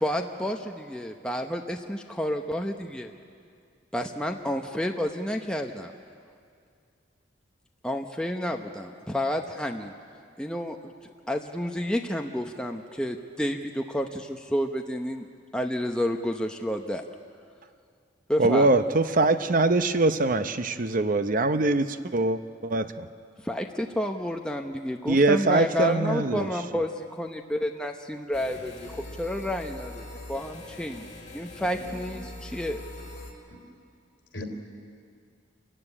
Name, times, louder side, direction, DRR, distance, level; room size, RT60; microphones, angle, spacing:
voice 1, 0.0-3.1 3.9-5.9 7.8-9.9 10.4-10.8 11.0-15.3 15.5-17.0 18.3-18.7 23.4-30.0 30.3-32.8, equal, 5° left, 3 dB, 0.8 m, -30 dB
voice 2, 18.4-23.1 25.1-26.5, right 2 dB, 45° right, 10 dB, 0.7 m, -23 dB
sound 1, 28.3-33.3, left 1 dB, 40° left, 4.1 m, -42 dB
voice 3, 28.5-29.1 30.8-30.9 31.7-32.1 32.5-32.6 33.5-33.7 34.3-34.5, left 1 dB, 65° left, 3 dB, 3.5 m, -41 dB
27.0 x 15.0 x 9.9 m, 2.3 s
head